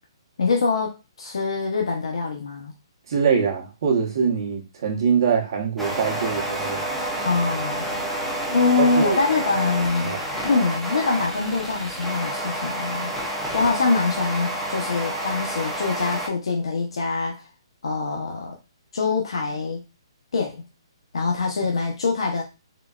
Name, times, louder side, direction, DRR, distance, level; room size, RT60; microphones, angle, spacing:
voice 1, 0.4-2.7 7.2-7.9 8.5-13.2 13.5-17.4 17.8-18.6 18.9-19.8 20.3-20.6 21.1-22.4, left 4 dB, 75° left, 0 dB, 0.7 m, -24 dB
voice 2, 3.1-6.8 8.8-9.2 10.0-10.2, right 6 dB, 50° right, 1 dB, 0.8 m, -23 dB
sound 1, 5.8-16.3, right 1 dB, ahead, 0.4 m, -29 dB
3.8 x 2.3 x 2.3 m, 0.27 s
hypercardioid pair, 170°, 3 cm